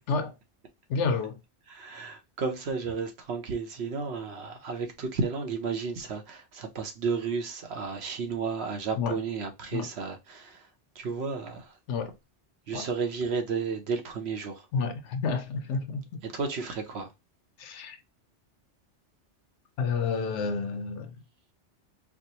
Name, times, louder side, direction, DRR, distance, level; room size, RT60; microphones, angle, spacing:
voice 1, 0.9-1.4 9.0-9.2 9.7-9.9 11.9-12.1 12.7-12.9 14.7-16.0 17.6-18.0 19.8-21.2, left 5 dB, 80° left, 1.0 m, -30 dB
voice 2, 1.7-10.6 11.0-11.7 12.7-14.6 16.2-17.1, right 5 dB, 65° right, 0.9 m, -32 dB
4.5 x 2.1 x 2.8 m
omnidirectional pair, 1.2 m